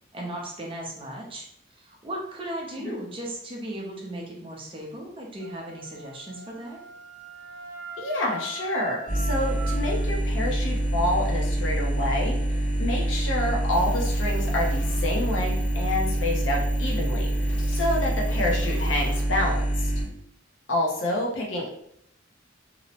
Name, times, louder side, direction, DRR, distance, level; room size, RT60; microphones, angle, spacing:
voice 1, 0.1-6.8, right 1 dB, 25° right, -1 dB, 0.5 m, -37 dB
Wind instrument woodwind instrument, 5.4-10.1, right 3 dB, 80° right, 0.5 m, -41 dB
voice 2, 8.0-19.9 20.7-21.7, left 1 dB, 65° left, -1 dB, 0.7 m, -28 dB
sound 1, 9.1-20.0, right 1 dB, 40° left, 1.0 m, -26 dB
sound 2, 13.7-19.2, left 2 dB, 90° left, 1.3 m, -46 dB
2.7 x 2.1 x 2.8 m, 0.71 s
head